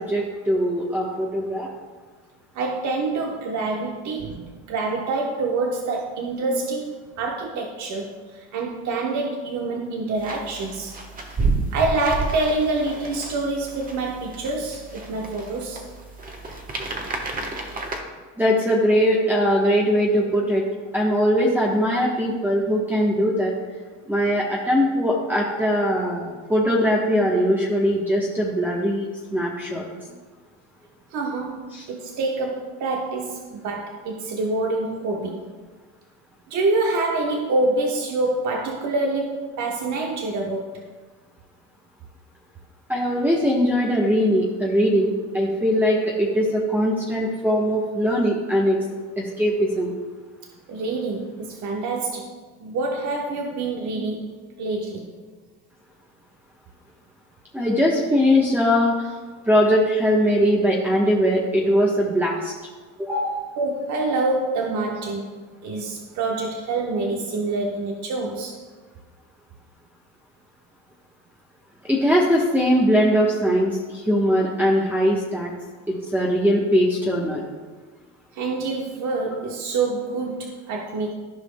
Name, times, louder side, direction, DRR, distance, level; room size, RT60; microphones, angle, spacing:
voice 1, 0.0-1.7 18.4-20.6 20.9-23.5 24.1-29.9 31.7-31.9 42.9-48.8 49.2-49.9 57.5-59.2 59.5-62.5 63.0-63.4 71.8-75.5 75.9-77.4, equal, 5° right, -4 dB, 1.0 m, -21 dB
voice 2, 2.5-10.9 11.7-15.8 31.1-35.5 36.5-40.8 50.7-52.3 52.6-55.1 63.6-65.4 65.6-68.6 78.3-81.1, right 3 dB, 55° right, 1 dB, 1.0 m, -26 dB
sound 1, 10.2-18.0, right 3 dB, 25° right, 1.2 m, -31 dB
14.5 x 5.0 x 2.2 m, 1.4 s
supercardioid pair, 100°, 36 cm